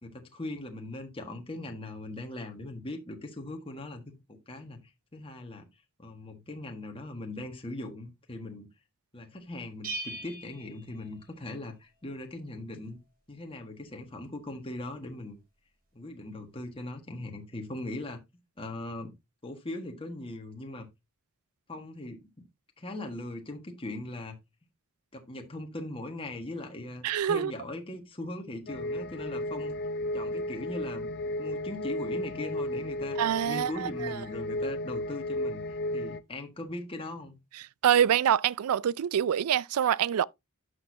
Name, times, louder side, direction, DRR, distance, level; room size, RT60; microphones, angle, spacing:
voice 1, 0.0-4.0 4.3-5.7 6.0-8.7 9.1-13.0 13.3-15.4 15.9-18.2 18.6-19.1 19.4-20.9 21.7-22.3 22.8-24.4 25.1-29.7 30.1-31.1 31.4-33.2 33.4-37.3, left 2 dB, 25° left, 1.5 m, -40 dB
Bell, 9.8-11.7, right 2 dB, 40° right, 3.2 m, -40 dB
voice 2, 27.0-27.5 33.2-34.2 37.8-40.3, right 9 dB, 85° right, 0.4 m, -25 dB
sound 1, 28.7-36.2, left 1 dB, 50° left, 0.6 m, -34 dB
11.0 x 6.4 x 2.7 m
head